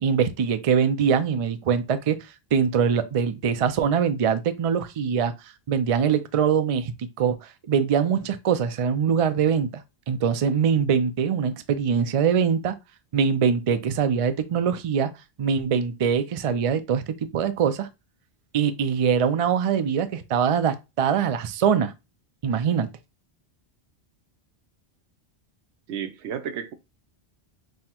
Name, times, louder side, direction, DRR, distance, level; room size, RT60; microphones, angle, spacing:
voice 1, 0.0-9.8 10.1-12.8 13.1-15.1 15.4-17.9 18.5-21.9 22.4-22.9, right 7 dB, 60° right, 0.3 m, -23 dB
voice 2, 25.9-26.7, right 8 dB, 85° right, 0.9 m, -32 dB
5.5 x 2.1 x 2.9 m
omnidirectional pair, 1.1 m